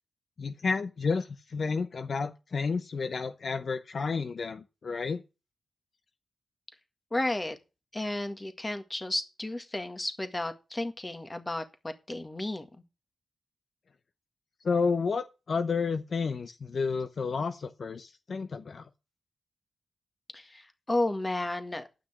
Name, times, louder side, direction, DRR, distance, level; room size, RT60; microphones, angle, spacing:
voice 1, 0.4-5.2 14.6-18.8, left 5 dB, 55° left, 0.7 m, -31 dB
voice 2, 7.1-7.6 7.9-12.7 20.3-21.9, left 1 dB, 20° left, 1.8 m, -33 dB
10.0 x 6.0 x 7.2 m
cardioid pair, 85°, 0 cm